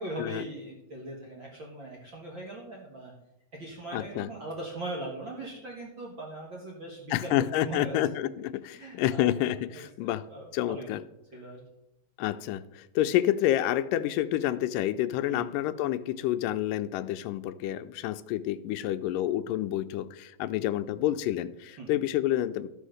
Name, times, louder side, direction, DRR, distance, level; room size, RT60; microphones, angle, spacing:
voice 1, 0.0-3.1 3.5-8.0 8.7-9.3 9.7-10.9 11.3-11.6 15.3-15.5 21.8-21.9, right 1 dB, 45° right, -2 dB, 1.7 m, -40 dB
voice 2, 3.9-4.3 7.1-10.3 10.5-11.0 12.2-22.7, left 13 dB, 85° left, 12 dB, 2.2 m, -29 dB
13.0 x 5.8 x 6.4 m, 0.89 s
omnidirectional pair, 3.8 m